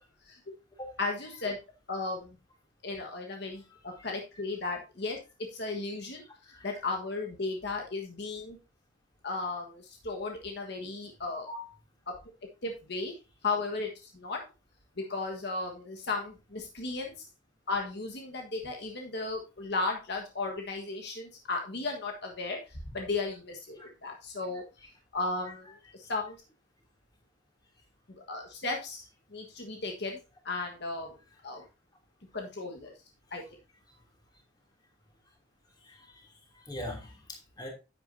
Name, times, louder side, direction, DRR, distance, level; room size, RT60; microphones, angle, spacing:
voice 1, 1.0-1.6 1.9-2.4 2.8-5.2 5.5-6.2 6.6-8.6 9.2-11.5 12.1-12.2 12.6-13.1 13.4-14.4 15.0-17.1 17.7-24.6 25.1-26.4 28.3-29.0 29.3-30.2 30.4-31.2 31.4-31.6 32.3-32.9 33.3-33.4, left 3 dB, 65° left, 2 dB, 1.5 m, -35 dB
voice 2, 3.7-4.1 6.5-6.7 11.5-11.7 23.8-23.9 35.8-37.7, left 1 dB, 20° left, 1 dB, 2.9 m, -43 dB
10.5 x 8.5 x 2.7 m, 0.29 s
head